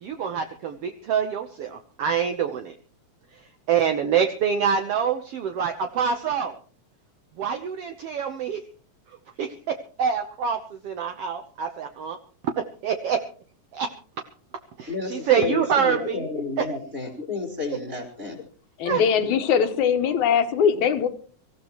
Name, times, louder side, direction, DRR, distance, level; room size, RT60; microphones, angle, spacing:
voice 1, 0.0-2.7 3.7-6.6 7.4-8.6 9.4-10.6 10.8-12.2 12.8-13.2 13.7-13.9 14.8-16.2 18.9-19.0, right 7 dB, 65° right, 5 dB, 1.8 m, -25 dB
voice 2, 14.9-18.4, left 4 dB, 25° right, 4 dB, 4.9 m, -31 dB
voice 3, 18.8-21.1, left 7 dB, 80° left, 9 dB, 2.6 m, -21 dB
25.0 x 15.0 x 3.1 m, 0.41 s
omnidirectional pair, 3.4 m